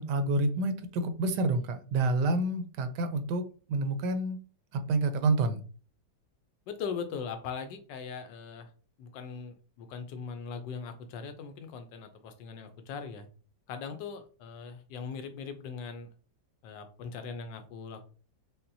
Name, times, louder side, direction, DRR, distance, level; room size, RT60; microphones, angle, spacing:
voice 1, 0.0-4.4 4.7-5.6, right 2 dB, 75° right, 9 dB, 1.2 m, -28 dB
voice 2, 6.7-8.7 9.0-13.3 13.7-16.1 16.6-18.1, left 6 dB, 90° left, 8 dB, 1.3 m, -40 dB
5.6 x 2.1 x 2.6 m, 0.39 s
omnidirectional pair, 1.9 m